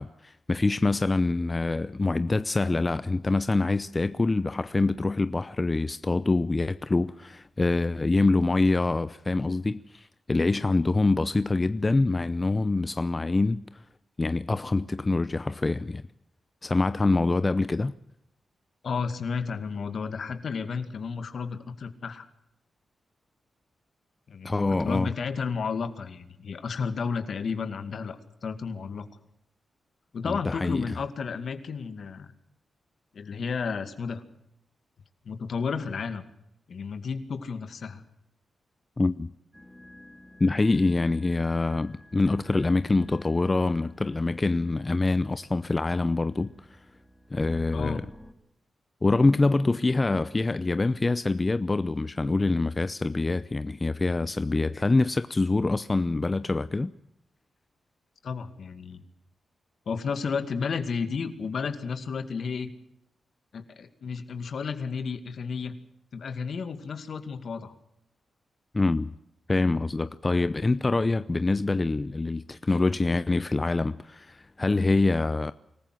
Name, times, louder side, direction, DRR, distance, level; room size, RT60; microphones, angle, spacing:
voice 1, 0.0-13.8 14.2-16.0 16.6-17.9 24.4-25.1 30.2-31.0 39.0-39.3 40.4-46.8 47.3-48.0 49.0-56.9 68.7-69.1 69.5-75.5, left 3 dB, 30° left, 0.7 m, -25 dB
voice 2, 18.8-22.3 24.3-29.1 30.1-32.3 33.1-34.2 35.2-36.2 36.7-38.0 47.7-48.0 58.2-59.0 59.9-62.7 63.5-65.7 66.1-67.7, left 5 dB, 70° left, 2.2 m, -32 dB
sound 1, 39.5-48.3, left 1 dB, ahead, 3.2 m, -51 dB
25.5 x 14.5 x 7.7 m
cardioid pair, 60°, 0 cm